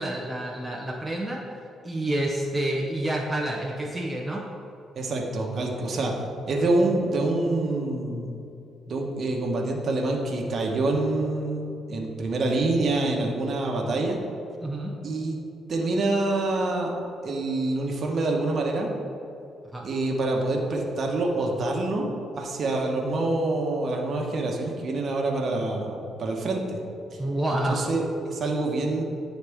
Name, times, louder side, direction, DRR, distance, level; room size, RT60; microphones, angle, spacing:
voice 1, 0.0-1.4 1.8-4.4 14.6-14.9 19.7-19.9 27.2-27.8, right 1 dB, 10° right, -1 dB, 0.6 m, -28 dB
voice 2, 5.0-6.1 6.5-8.4 8.9-14.2 15.0-15.4 15.7-16.9 17.2-18.9 19.8-22.1 22.4-26.8 27.6-29.0, right 2 dB, 50° right, 0 dB, 1.0 m, -26 dB
9.5 x 4.1 x 3.5 m, 2.7 s
cardioid pair, 90°, 0 cm